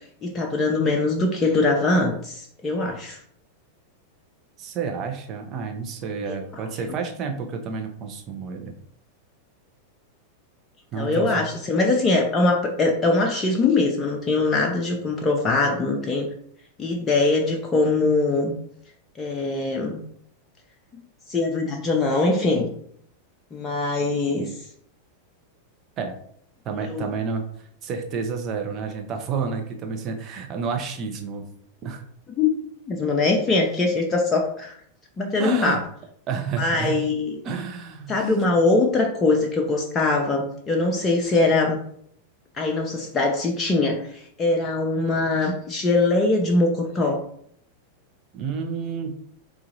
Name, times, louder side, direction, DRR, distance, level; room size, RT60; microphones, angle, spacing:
voice 1, 0.2-3.2 11.0-16.3 16.8-18.5 19.2-20.0 20.9-21.0 21.3-22.7 23.5-24.5 26.7-27.0 32.3-32.5 32.9-34.7 35.2-35.8 36.6-37.4 38.1-41.8 42.6-47.2, left 3 dB, 20° left, 1 dB, 0.5 m, -22 dB
voice 2, 4.6-8.7 10.9-11.4 26.0-26.1 26.6-27.4 27.8-31.4 31.8-32.0 35.4-35.8 36.3-37.0 37.4-38.3 48.3-49.2, right 5 dB, 35° right, 4 dB, 0.7 m, -30 dB
4.6 x 2.4 x 2.7 m, 0.65 s
figure-of-eight pair, 90°, 0 cm